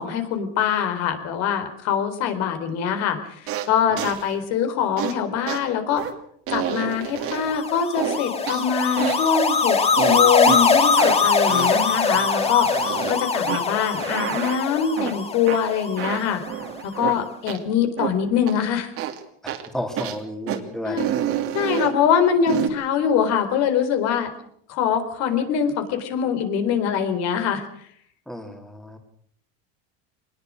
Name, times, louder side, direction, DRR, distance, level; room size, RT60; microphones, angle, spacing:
voice 1, 0.0-6.0 6.5-9.8 10.1-12.7 13.1-16.4 16.8-18.9 20.8-21.1 21.5-24.3 24.7-27.7, left 7 dB, 60° left, 8 dB, 4.2 m, -23 dB
sound 1, 3.5-3.7 4.0-4.2 5.0-5.1 5.5-5.6 6.0-6.1 6.5-7.6 8.0-8.6 9.0-9.3 10.0-10.6 11.0-11.2 11.5-13.2 13.5-13.6 14.0-14.6 15.0-15.1 15.5-15.6 16.0-17.2 17.5-17.6 18.0-18.1 18.5-18.6 19.0-19.2 19.5-19.7 20.0-20.2 20.5-20.6 21.0-21.9 22.5-22.7, right 11 dB, 45° right, 2.8 m, -28 dB
sound 2, 7.3-16.6, left 5 dB, 20° left, 2.2 m, -22 dB
voice 2, 19.4-21.1 28.3-29.0, equal, ahead, 4 dB, 3.1 m, -32 dB
23.0 x 20.0 x 6.4 m, 0.64 s
cardioid pair, 150°, 31 cm